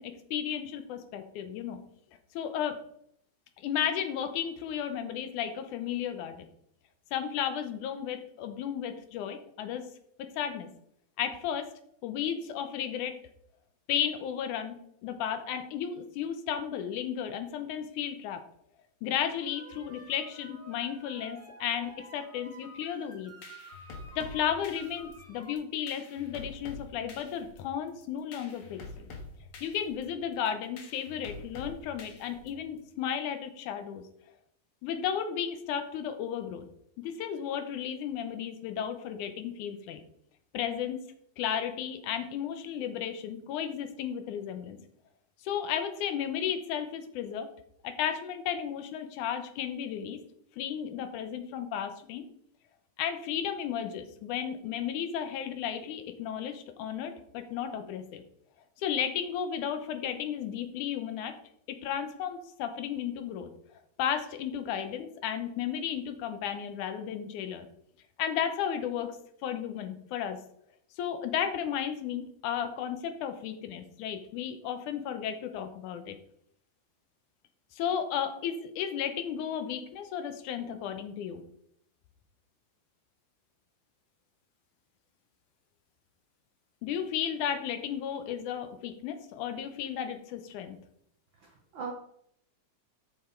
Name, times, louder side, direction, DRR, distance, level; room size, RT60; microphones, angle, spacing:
voice 1, 0.0-1.8 2.3-2.8 3.6-6.5 7.1-9.9 10.2-10.7 11.2-11.7 12.0-13.2 13.9-14.8 15.0-18.4 19.0-23.3 24.2-29.1 29.6-34.1 34.8-36.7 37.0-40.0 40.5-41.0 41.4-44.8 45.4-47.5 47.8-50.2 50.6-52.2 53.0-58.2 58.8-61.4 61.7-63.5 64.0-67.7 68.2-70.4 71.0-76.2 77.7-81.4 86.8-90.8, left 9 dB, 80° left, 9 dB, 2.2 m, -34 dB
sound 1, 19.4-25.5, right 1 dB, 10° right, 0.9 m, -51 dB
sound 2, 23.1-32.8, left 3 dB, 55° left, 2.0 m, -47 dB
voice 2, 91.3-91.9, right 6 dB, 80° right, 2 dB, 1.1 m, -40 dB
6.9 x 6.9 x 4.4 m, 0.71 s
omnidirectional pair, 3.6 m